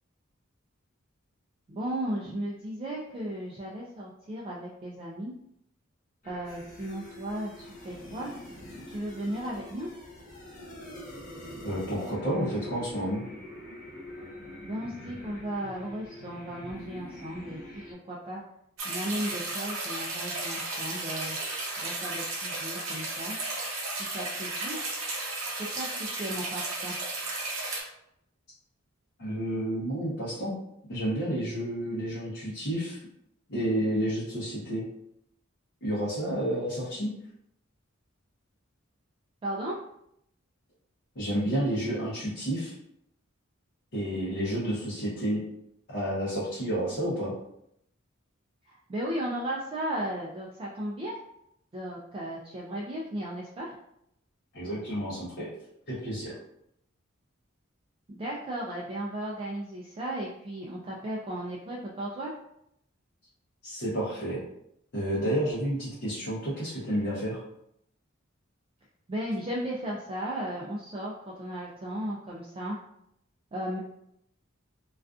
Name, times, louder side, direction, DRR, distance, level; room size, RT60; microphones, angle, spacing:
voice 1, 1.7-5.3 6.2-8.4 8.9-9.9 14.7-17.6 18.0-18.4 18.8-21.4 21.8-23.4 24.0-24.8 25.4-26.9 39.4-39.8 48.7-51.2 51.7-53.7 58.1-62.3 69.1-72.8 73.5-73.8, right 1 dB, 25° right, -4 dB, 0.3 m, -35 dB
sound 1, 6.2-17.9, left 1 dB, 40° left, 1.0 m, -44 dB
voice 2, 11.6-13.2 29.2-30.6 30.9-33.0 33.5-34.9 35.8-37.1 41.1-42.7 43.9-45.4 45.9-47.3 54.5-55.5 55.9-56.4 63.6-64.4 64.9-67.4, right 1 dB, 55° left, -9 dB, 0.7 m, -30 dB
sound 2, 18.8-27.8, right 2 dB, 80° right, 0.7 m, -34 dB
2.4 x 2.4 x 2.3 m, 0.77 s
head